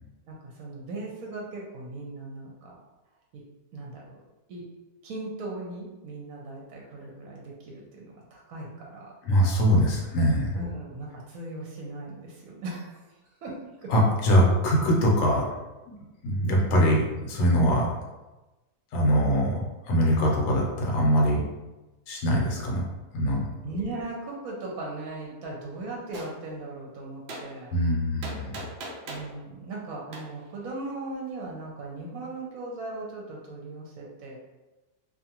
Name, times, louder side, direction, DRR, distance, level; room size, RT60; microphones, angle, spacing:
voice 1, 0.3-2.8 3.3-3.4 3.7-4.0 4.5-4.6 5.0-9.1 10.5-13.0 13.4-13.9 23.6-27.8 29.1-34.4, right 2 dB, 70° right, -3 dB, 1.0 m, -38 dB
voice 2, 9.2-10.6 13.9-15.5 15.9-16.0 16.2-17.9 18.9-19.6 19.9-21.4 22.1-22.8 23.1-23.4 27.7-28.6, equal, 65° left, -1 dB, 1.0 m, -22 dB
Gunshot gunfire, 26.1-26.3 27.3-27.4 28.2-29.3 30.1-30.2, right 2 dB, 85° right, 0.5 m, -38 dB
2.5 x 2.4 x 2.8 m, 1.1 s
omnidirectional pair, 1.7 m